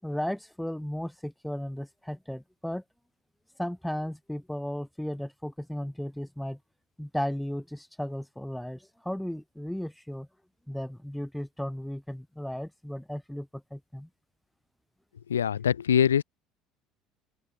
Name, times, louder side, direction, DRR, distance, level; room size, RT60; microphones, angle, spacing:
voice 1, 0.0-2.8 3.6-6.6 7.0-10.3 10.7-14.1, equal, 5° left, 6.5 m, -35 dB
voice 2, 15.3-16.2, left 8 dB, 85° left, 1.4 m, -23 dB
open air
hypercardioid pair, 65°, 0 cm